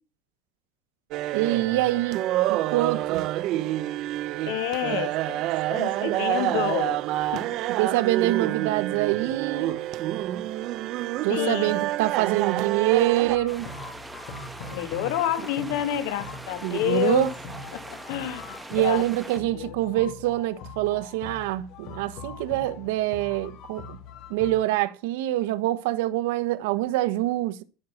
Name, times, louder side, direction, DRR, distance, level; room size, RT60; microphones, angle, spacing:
sound 1, 1.1-13.4, right 15 dB, 45° right, 0.7 m, -28 dB
voice 1, 1.3-3.2 7.8-9.8 11.2-13.7 16.6-17.3 18.7-24.0 24.3-27.6, right 15 dB, 80° right, 1.2 m, -25 dB
voice 2, 4.5-7.5 11.3-11.8 14.7-17.3 17.7-19.0 19.5-19.7, left 13 dB, 75° left, 2.3 m, -29 dB
sound 2, 13.2-24.6, left 3 dB, 50° left, 2.6 m, -42 dB
sound 3, 13.5-19.4, right 2 dB, 5° right, 1.5 m, -42 dB
14.0 x 6.6 x 5.8 m
cardioid pair, 170°, 0 cm